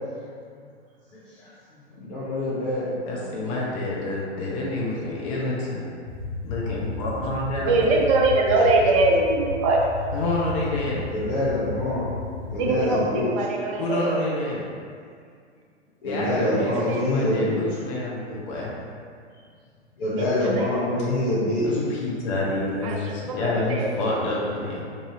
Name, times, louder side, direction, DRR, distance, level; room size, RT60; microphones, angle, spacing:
voice 1, 2.0-2.9 11.1-12.1 12.5-13.3 16.0-17.6 20.0-21.6, left 1 dB, 45° left, -11 dB, 1.0 m, -25 dB
voice 2, 3.0-5.9 6.4-7.7 10.1-11.0 13.8-14.6 16.0-18.7 21.6-24.8, left 2 dB, 30° left, -5 dB, 0.6 m, -28 dB
sound 1, 6.1-12.7, left 3 dB, 90° left, 0.8 m, -33 dB
voice 3, 7.6-9.9 12.6-14.2 16.4-17.5 20.1-20.9 22.8-23.9, right 2 dB, 30° right, 0 dB, 0.4 m, -23 dB
2.9 x 2.7 x 3.7 m, 2.2 s
figure-of-eight pair, 110°, 34 cm